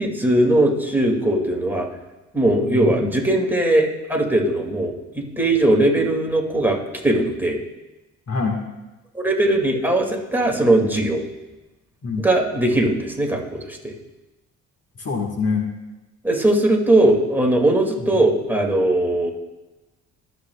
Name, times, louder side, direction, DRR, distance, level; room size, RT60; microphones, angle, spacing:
voice 1, 0.0-1.9 2.3-6.8 7.0-7.6 9.1-11.2 12.2-13.9 16.2-19.3, right 1 dB, 5° right, 0 dB, 2.3 m, -19 dB
voice 2, 2.6-3.2 8.3-8.6 12.0-12.3 15.0-15.7 18.0-18.2, left 4 dB, 45° left, 1 dB, 1.8 m, -25 dB
24.0 x 8.1 x 2.4 m, 1.1 s
supercardioid pair, 75°, 35 cm